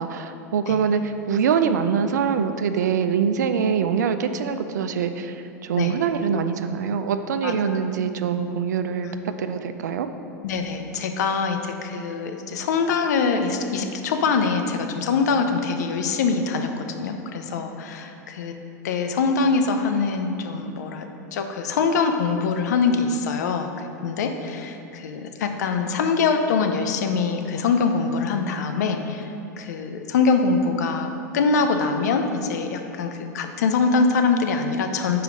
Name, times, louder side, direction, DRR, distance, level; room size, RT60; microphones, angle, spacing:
voice 1, 0.0-10.1, right 7 dB, 80° right, 9 dB, 0.4 m, -24 dB
voice 2, 10.4-18.5 18.8-23.7 24.0-29.3 29.6-35.2, left 4 dB, 75° left, 6 dB, 0.5 m, -23 dB
4.9 x 4.7 x 5.1 m, 2.7 s
hypercardioid pair, 95°, 9 cm